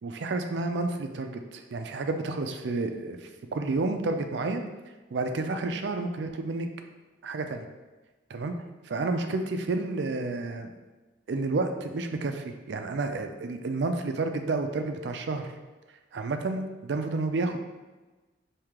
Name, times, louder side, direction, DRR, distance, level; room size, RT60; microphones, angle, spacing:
voice 1, 0.0-3.2 3.5-4.6 5.1-6.7 7.2-7.6 8.3-8.5 8.9-10.7 11.3-15.5 16.1-17.6, right 3 dB, 70° right, 6 dB, 0.4 m, -30 dB
4.6 x 2.8 x 3.6 m, 1.2 s
head